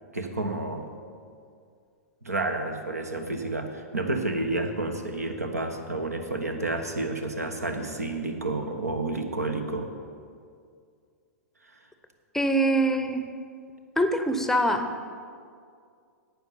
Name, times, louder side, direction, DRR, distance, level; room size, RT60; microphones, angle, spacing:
voice 1, 0.1-0.9 2.2-9.9, right 2 dB, 85° right, 6 dB, 1.1 m, -30 dB
voice 2, 12.3-13.3 14.0-15.0, right 1 dB, 5° left, 8 dB, 0.6 m, -24 dB
11.5 x 8.6 x 5.6 m, 2.2 s
figure-of-eight pair, 105°, 8 cm